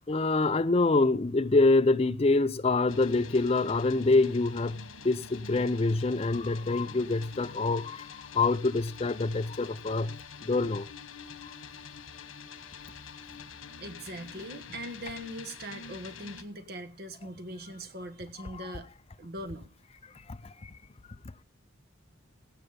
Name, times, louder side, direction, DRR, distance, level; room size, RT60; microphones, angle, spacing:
voice 1, 0.1-10.9 11.4-11.5 18.6-18.7 20.3-20.7, left 3 dB, 30° left, 0.5 m, -26 dB
sound 1, 2.9-16.4, left 5 dB, 85° left, 1.4 m, -46 dB
voice 2, 13.8-18.9 19.2-19.7, right 1 dB, 50° right, 1.3 m, -41 dB
16.5 x 8.0 x 5.2 m
head